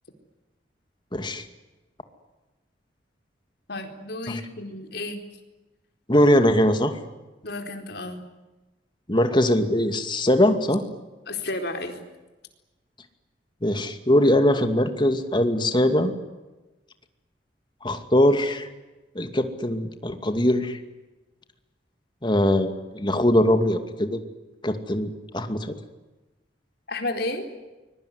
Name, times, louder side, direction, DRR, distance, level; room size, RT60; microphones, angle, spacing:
voice 1, 1.1-1.5 4.3-4.4 6.1-7.0 9.1-10.8 13.6-16.1 17.8-18.7 19.1-20.8 22.2-24.2 24.6-25.7, left 1 dB, 25° left, 8 dB, 2.4 m, -21 dB
voice 2, 3.7-5.2 7.4-8.2 11.3-12.0 26.9-27.4, left 2 dB, 60° left, 5 dB, 4.3 m, -32 dB
24.5 x 22.5 x 9.7 m, 1.1 s
head